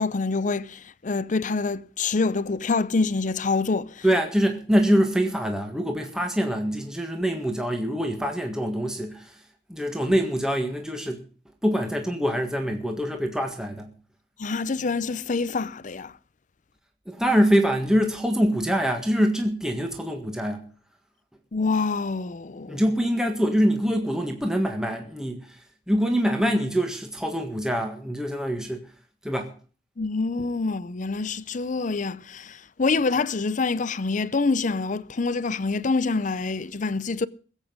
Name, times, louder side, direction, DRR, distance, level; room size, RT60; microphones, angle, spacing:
voice 1, 0.0-4.0 14.4-16.1 21.5-22.8 30.0-37.3, left 4 dB, 45° left, 0.6 m, -26 dB
voice 2, 4.0-9.4 9.7-11.2 11.6-13.9 17.1-20.6 22.7-28.9 29.2-29.5, equal, 5° right, 1.6 m, -24 dB
21.5 x 8.3 x 5.3 m
head